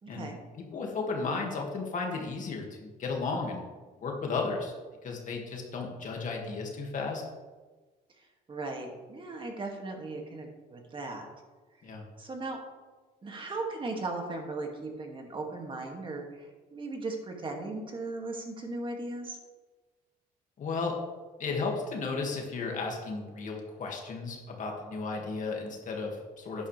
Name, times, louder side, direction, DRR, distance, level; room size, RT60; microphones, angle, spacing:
voice 1, 0.0-0.4 8.2-11.3 12.2-12.6 13.2-19.4, right 2 dB, 30° right, 2 dB, 2.3 m, -37 dB
voice 2, 0.7-3.6 4.0-4.7 5.0-7.2 11.8-12.0 20.6-20.9 21.4-26.7, left 4 dB, 50° left, 0 dB, 2.2 m, -34 dB
11.0 x 11.0 x 3.4 m, 1.3 s
cardioid pair, 110°, 17 cm